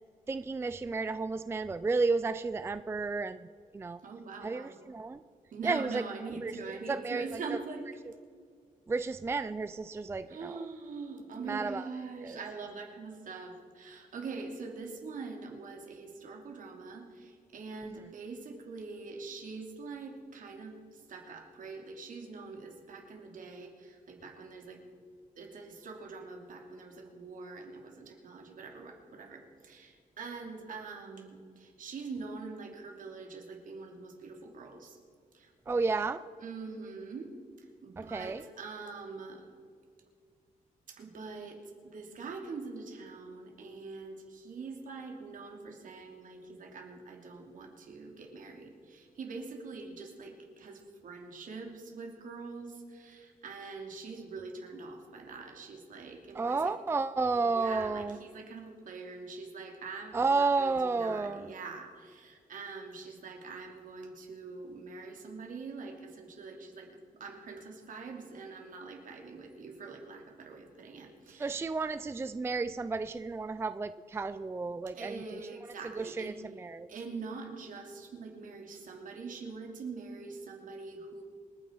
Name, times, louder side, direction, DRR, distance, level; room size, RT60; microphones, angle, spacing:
voice 1, 0.3-3.5 3.7-4.0 4.4-5.2 5.6-6.0 6.4-6.5 6.9-7.2 7.5-7.6 8.9-10.6 11.4-11.9 12.2-12.4 17.8-18.0 35.7-36.2 38.0-38.4 56.3-58.2 60.1-61.5 71.4-75.4 75.8-76.9, right 4 dB, 15° right, 13 dB, 0.4 m, -32 dB
voice 2, 4.0-4.7 5.5-7.8 10.3-24.9 25.4-35.0 35.3-35.5 36.4-37.3 37.8-39.5 40.9-56.7 57.3-66.9 67.2-71.6 74.9-76.4 76.9-81.2, right 4 dB, 70° right, 2 dB, 2.8 m, -44 dB
27.5 x 9.6 x 4.6 m, 2.1 s
wide cardioid pair, 155°, 14 cm